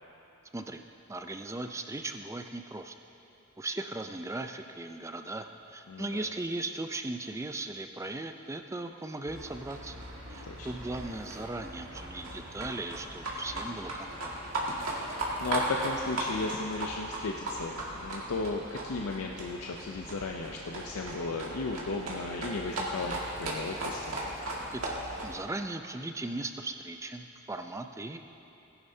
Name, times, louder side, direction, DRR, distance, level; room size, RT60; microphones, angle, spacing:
voice 1, 1.1-3.0 3.6-14.3 24.7-28.2, right 2 dB, 15° right, 6 dB, 0.4 m, -38 dB
voice 2, 5.9-6.2 10.4-10.7 14.9-24.2, left 3 dB, 80° left, 1 dB, 0.6 m, -35 dB
Livestock farm animals working animals, 9.3-25.4, right 1 dB, 80° right, 2.1 m, -37 dB
18.5 x 11.0 x 2.8 m, 2.8 s
head